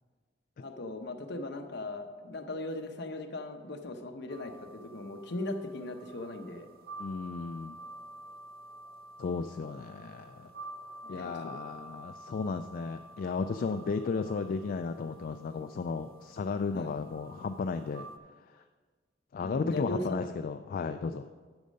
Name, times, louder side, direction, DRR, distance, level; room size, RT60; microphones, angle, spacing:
voice 1, 0.6-6.7 10.0-10.1 11.0-11.5 16.7-16.9 19.4-20.2, left 2 dB, 65° left, 5 dB, 0.9 m, -38 dB
sound 1, 4.3-18.2, right 2 dB, 55° right, 0.5 m, -49 dB
voice 2, 7.0-7.8 9.2-10.5 11.1-18.1 18.5-18.6 19.3-21.3, left 4 dB, 50° left, 8 dB, 0.3 m, -34 dB
10.5 x 6.4 x 5.3 m, 1.5 s
head